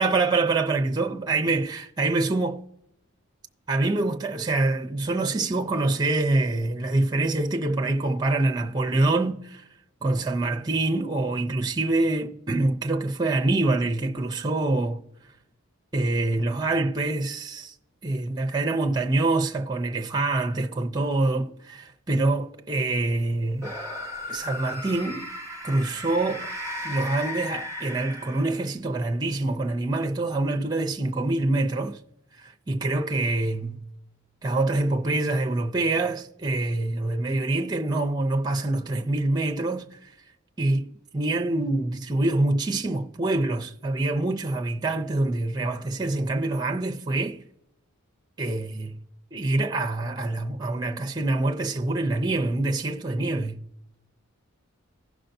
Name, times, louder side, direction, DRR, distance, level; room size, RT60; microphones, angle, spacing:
voice 1, 0.0-2.6 3.7-9.6 10.0-15.0 15.9-17.7 18.0-23.7 24.3-25.2 25.6-26.5 26.8-32.0 32.4-33.8 34.4-40.1 40.6-47.4 48.4-49.0 49.3-53.6, right 2 dB, 20° right, 0.5 m, -25 dB
sound 1, 23.6-28.8, left 1 dB, 15° left, 2.5 m, -35 dB
16.5 x 5.6 x 2.6 m
head